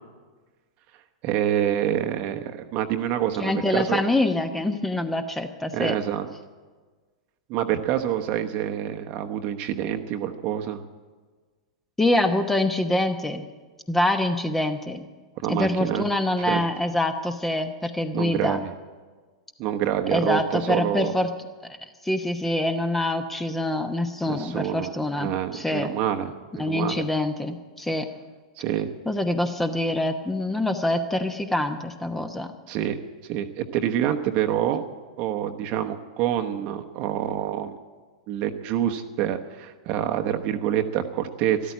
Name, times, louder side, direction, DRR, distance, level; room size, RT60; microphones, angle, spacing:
voice 1, 1.2-4.0 5.7-6.2 7.5-10.8 15.4-16.0 16.5-16.6 18.1-18.6 19.6-21.1 24.3-27.0 28.6-28.9 32.7-33.0 33.3-34.8 35.2-37.8 38.3-41.7, right 11 dB, 40° right, 6 dB, 1.1 m, -27 dB
voice 2, 3.4-6.0 12.0-13.4 13.9-15.1 15.5-18.6 20.1-21.3 21.6-21.8 22.0-25.9 26.6-28.1 29.1-32.5, left 1 dB, 5° left, 8 dB, 1.0 m, -25 dB
13.0 x 12.5 x 8.5 m, 1.4 s
figure-of-eight pair, 100°, 3 cm